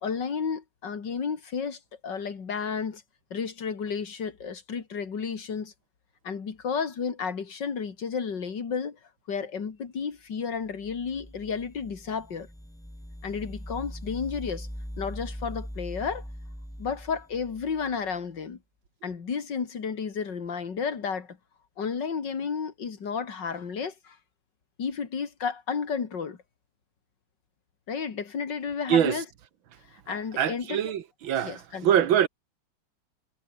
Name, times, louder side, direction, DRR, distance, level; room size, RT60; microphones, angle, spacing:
voice 1, 0.0-3.0 3.3-5.7 6.2-9.0 9.3-12.5 13.2-14.7 15.0-16.2 16.8-18.6 19.0-21.4 21.8-24.2 24.8-26.4 27.9-29.2 29.9-30.9 31.4-31.9, left 6 dB, 65° left, 2.9 m, -32 dB
sound 1, 10.6-18.2, equal, ahead, 3.1 m, -41 dB
voice 2, 30.4-32.3, right 10 dB, 85° right, 2.0 m, -24 dB
omnidirectional pair, 2.1 m